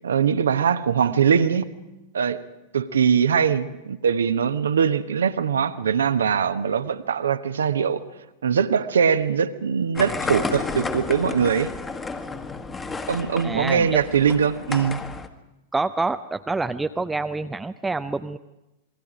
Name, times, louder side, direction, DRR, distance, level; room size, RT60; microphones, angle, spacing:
voice 1, 0.0-1.7 2.1-2.4 2.7-8.0 8.4-11.7 13.1-15.0, right 7 dB, 70° right, 1.1 m, -22 dB
sound 1, 9.9-15.3, left 4 dB, 15° left, 1.7 m, -32 dB
voice 2, 13.4-14.0 15.7-18.4, right 3 dB, 10° right, 0.6 m, -27 dB
27.5 x 21.5 x 5.1 m
figure-of-eight pair, 95°, 0 cm